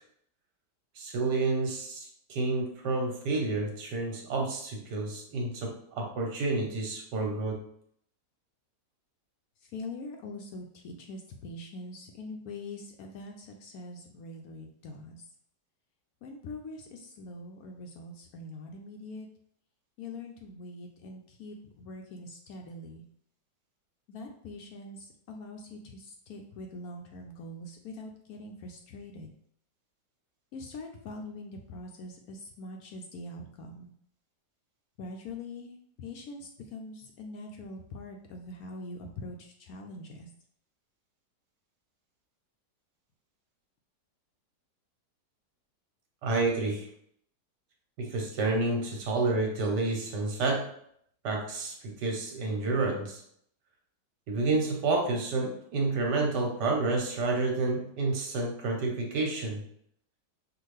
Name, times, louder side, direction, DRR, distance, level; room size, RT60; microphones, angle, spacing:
voice 1, 1.0-7.6 46.2-46.9 48.0-50.7 51.2-53.2 54.3-59.6, right 3 dB, 75° right, 0 dB, 1.6 m, -29 dB
voice 2, 9.6-15.2 16.2-19.3 20.0-23.0 24.1-29.3 30.5-33.9 35.0-40.3, left 2 dB, 70° left, 3 dB, 0.9 m, -43 dB
5.9 x 2.5 x 3.2 m, 0.68 s
omnidirectional pair, 1.8 m